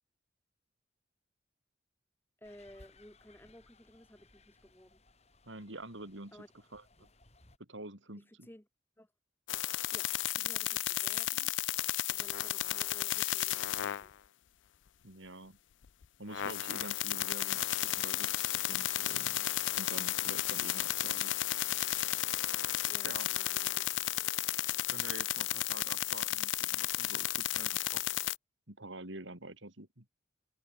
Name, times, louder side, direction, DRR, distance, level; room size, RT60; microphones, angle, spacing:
sound 1, 2.4-7.6, left 2 dB, 35° left, 3.4 m, -63 dB
voice 1, 2.4-5.0 6.3-6.5 8.3-8.7 9.0-9.1 9.9-11.5 12.1-14.1 22.9-24.4, equal, 10° left, 1.7 m, -56 dB
voice 2, 5.4-6.4 6.7-7.1 7.7-8.5 15.0-15.6 16.2-19.5 19.8-21.3 22.3-22.4 23.0-23.3 24.9-28.1 28.7-30.0, right 2 dB, 80° right, 4.9 m, -47 dB
sound 2, 9.5-14.0 16.0-16.1 16.3-28.3, left 15 dB, 75° left, 0.5 m, -33 dB
head